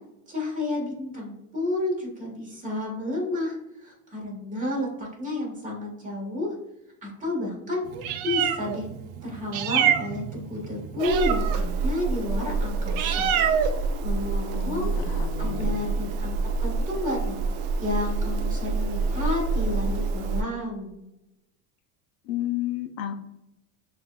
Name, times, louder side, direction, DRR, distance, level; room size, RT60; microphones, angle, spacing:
voice 1, 0.3-6.5 7.0-7.9 8.2-8.9 9.2-13.3 13.8-17.4 17.8-20.9, left 1 dB, 20° right, -3 dB, 1.5 m, -31 dB
Meow, 7.9-20.4, right 5 dB, 65° right, 0.5 m, -27 dB
voice 2, 14.5-16.1 22.2-23.2, left 11 dB, 80° left, 8 dB, 0.6 m, -32 dB
6.2 x 2.6 x 2.2 m, 0.89 s
cardioid pair, 145°, 40 cm